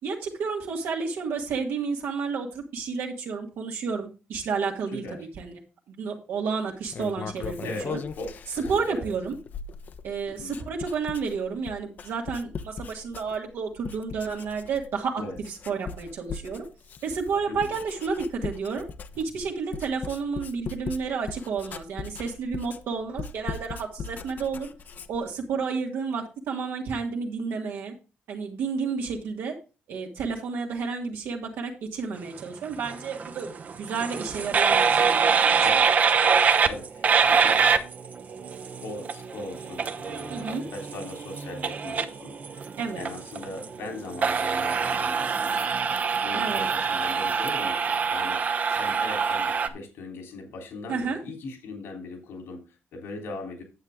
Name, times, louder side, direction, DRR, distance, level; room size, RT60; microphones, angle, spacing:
voice 1, 0.0-5.5 5.9-8.0 8.7-9.4 10.0-15.2 15.5-16.7 17.0-18.9 19.2-24.7 25.1-27.9 28.3-29.5 29.9-33.5 33.8-35.5 40.3-40.6 42.8-43.0 46.3-46.7 50.9-51.2, right 5 dB, 75° right, 0 dB, 2.0 m, -31 dB
Writing, 6.8-13.6 13.8-15.0 15.3-25.3, left 5 dB, 45° left, 0.8 m, -39 dB
voice 2, 7.6-8.3 8.5-9.1 10.3-10.6 15.2-15.4 17.5-17.6 35.6-35.9 36.6-37.6 38.8-42.7 43.0-53.6, left 2 dB, 80° left, 3 dB, 3.5 m, -39 dB
sound 1, 32.7-49.7, right 6 dB, 40° right, 0.8 m, -25 dB
9.6 x 8.0 x 3.6 m, 0.32 s
cardioid pair, 135°, 4 cm